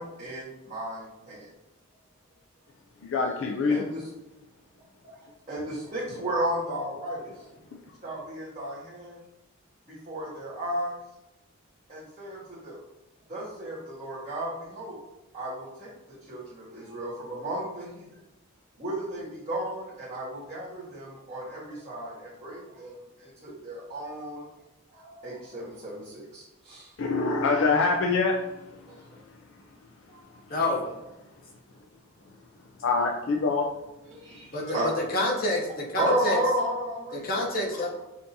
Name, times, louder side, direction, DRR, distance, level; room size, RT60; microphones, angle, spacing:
voice 1, 0.0-1.5 3.7-4.1 5.0-7.3 8.0-9.2 9.9-11.0 11.9-12.8 13.3-15.0 15.3-15.9 16.2-18.2 18.8-24.4 24.9-26.9 28.9-29.2 30.1-30.6 34.0-34.9 36.0-37.3, right 1 dB, 30° right, -11 dB, 1.3 m, -34 dB
voice 2, 3.0-3.8 27.0-28.4 32.8-33.7, left 4 dB, 60° left, 0 dB, 0.4 m, -24 dB
voice 3, 30.5-30.9 34.5-34.8 35.1-36.4 37.1-38.1, left 2 dB, 45° left, -1 dB, 0.8 m, -28 dB
5.7 x 2.7 x 2.7 m, 0.98 s
head